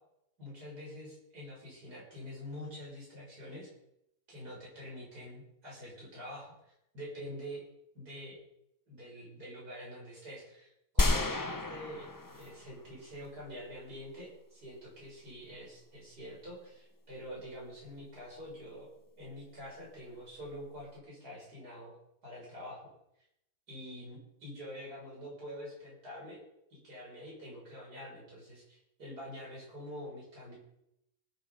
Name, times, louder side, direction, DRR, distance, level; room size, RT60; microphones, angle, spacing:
voice 1, 0.4-3.7 4.3-7.6 7.9-8.4 8.9-18.9 19.2-22.0 22.2-22.9 23.7-26.4 26.7-30.6, equal, 70° right, -4 dB, 7.2 m, -46 dB
sound 1, 11.0-12.9 13.2-13.3, left 2 dB, 25° left, 0.4 m, -31 dB
19.0 x 7.8 x 5.6 m, 0.80 s
omnidirectional pair, 1.8 m